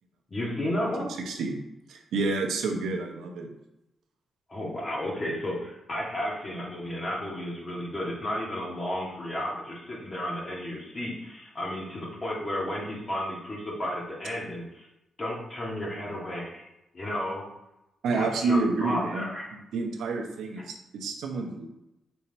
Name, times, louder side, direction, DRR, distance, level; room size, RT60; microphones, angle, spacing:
voice 1, 0.3-1.1 4.5-14.9 15.2-16.6 16.9-17.4 18.1-19.5, left 1 dB, 30° left, -3 dB, 1.8 m, -33 dB
voice 2, 1.9-3.5 18.0-19.3 19.7-21.7, right 3 dB, 85° right, 3 dB, 1.0 m, -29 dB
5.7 x 4.6 x 4.5 m, 0.90 s
cardioid pair, 115°, 0 cm